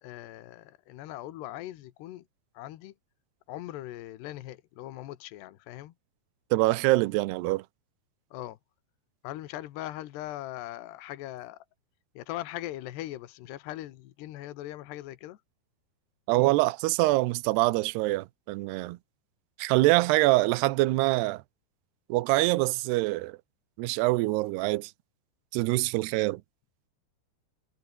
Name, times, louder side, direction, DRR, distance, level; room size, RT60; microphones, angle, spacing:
voice 1, 0.0-2.2 2.5-2.9 3.5-5.9 8.3-8.6 9.2-11.7 12.1-15.4, left 14 dB, 80° left, 3.4 m, -40 dB
voice 2, 6.5-7.6 16.3-19.0 19.6-21.4 22.1-23.4 23.8-24.9 25.5-26.4, right 20 dB, 80° right, 2.8 m, -25 dB
omnidirectional pair, 4.8 m